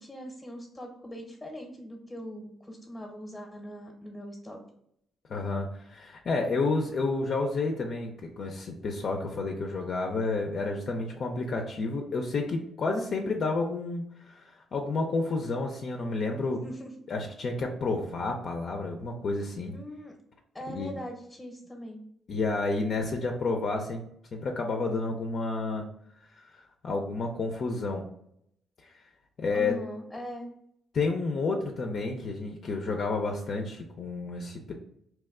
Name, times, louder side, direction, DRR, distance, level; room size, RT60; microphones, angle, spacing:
voice 1, 0.0-4.6 16.6-16.9 19.7-20.1 20.5-22.0 29.5-30.5, equal, 15° left, 1 dB, 0.8 m, -41 dB
voice 2, 5.3-16.6 17.1-19.7 20.7-20.9 22.3-24.0 24.3-25.9 26.4-28.1 29.4-29.8 30.9-34.7, left 3 dB, 55° left, 2 dB, 0.4 m, -30 dB
2.9 x 2.2 x 3.5 m, 0.73 s
cardioid pair, 90°, 0 cm